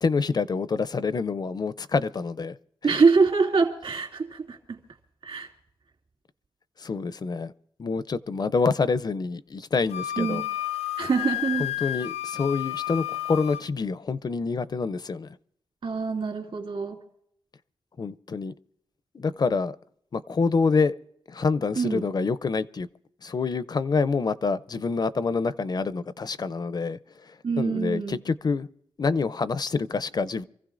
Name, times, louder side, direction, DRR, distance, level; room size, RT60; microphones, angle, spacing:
voice 1, 0.0-2.5 2.8-3.0 6.8-7.5 7.8-10.4 11.6-15.4 18.0-18.5 19.1-19.8 20.1-21.0 21.3-22.9 23.2-27.0 27.3-28.7 29.0-30.4, left 4 dB, 40° left, 0.4 m, -27 dB
voice 2, 2.8-4.8 5.2-5.5 10.2-10.4 11.0-11.7 15.8-17.0 21.8-22.0 27.4-28.2, right 4 dB, 60° right, 2.4 m, -24 dB
Wind instrument woodwind instrument, 9.9-13.6, left 14 dB, 90° left, 0.6 m, -31 dB
27.0 x 15.0 x 2.5 m
wide cardioid pair, 105°, 10 cm